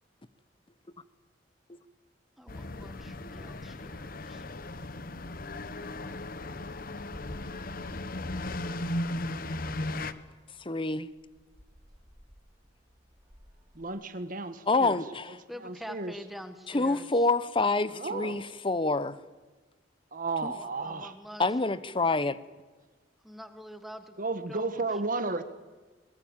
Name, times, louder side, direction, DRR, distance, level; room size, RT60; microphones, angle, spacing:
voice 1, 2.4-4.4 15.5-17.3 20.4-21.8 23.2-24.2 24.5-24.9, equal, ahead, 1.4 m, -46 dB
sound 1, 2.5-10.1, left 2 dB, 50° left, 1.1 m, -36 dB
sound 2, 7.1-9.0 9.3-9.5 10.0-10.1 10.4-10.5 10.9-13.9, equal, 20° right, 3.5 m, -53 dB
voice 2, 10.6-11.1 14.7-15.4 16.7-19.2 20.4-20.5 21.4-22.3, left 3 dB, 30° left, 0.9 m, -27 dB
voice 3, 13.7-15.0 15.6-16.1 17.9-18.5 20.1-21.1 24.2-25.4, right 3 dB, 50° right, 1.3 m, -33 dB
22.0 x 21.0 x 8.8 m
head